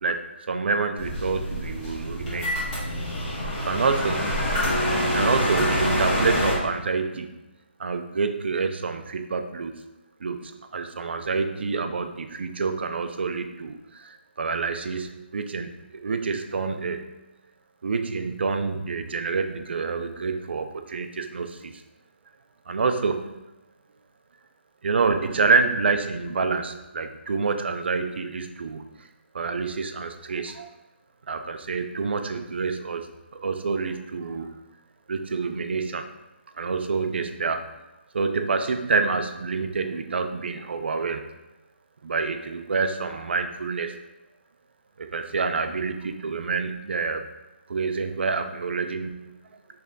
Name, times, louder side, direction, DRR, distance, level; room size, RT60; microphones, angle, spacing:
voice 1, 0.0-2.5 3.6-4.4 5.1-7.4 7.8-9.8 10.2-17.1 17.8-21.8 22.7-23.4 24.8-28.8 29.3-30.7 31.3-33.1 33.4-34.6 35.1-36.1 36.6-37.7 38.1-41.3 42.0-44.0 45.0-47.3 47.7-49.2, right 4 dB, 60° right, 7 dB, 0.4 m, -27 dB
sound 1, 1.0-6.5, equal, 30° left, 1.3 m, -26 dB
3.3 x 2.4 x 3.7 m, 1.0 s
figure-of-eight pair, 155°, 7 cm